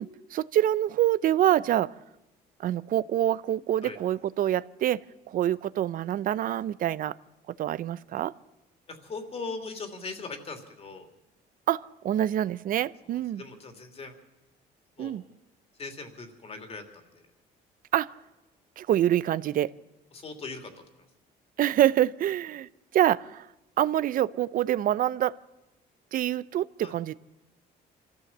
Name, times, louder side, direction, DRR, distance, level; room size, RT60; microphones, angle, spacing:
voice 1, 0.0-1.9 2.6-5.0 5.3-7.1 7.6-8.3 11.7-13.4 15.0-15.2 17.9-18.1 18.8-19.7 21.6-23.5 23.8-25.3 26.1-27.1, right 12 dB, 55° right, 18 dB, 0.6 m, -26 dB
voice 2, 8.9-11.1 13.0-14.2 15.0-15.2 15.8-17.2 20.1-20.7 26.8-26.9, left 4 dB, 35° left, 5 dB, 2.9 m, -40 dB
24.5 x 14.5 x 7.3 m, 1.0 s
cardioid pair, 110°, 17 cm